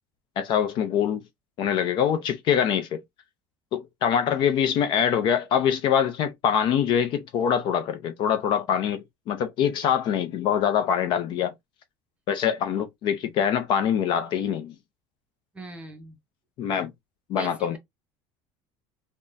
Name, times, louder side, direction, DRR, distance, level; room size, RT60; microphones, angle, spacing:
voice 1, 0.4-1.2 1.6-3.0 3.7-11.5 12.3-14.7 16.6-16.9 17.3-17.8, left 8 dB, 45° left, 0.5 m, -24 dB
voice 2, 15.5-16.2 17.3-17.8, right 3 dB, 10° right, 0.8 m, -40 dB
3.5 x 2.1 x 2.5 m
cardioid pair, 150°, 11 cm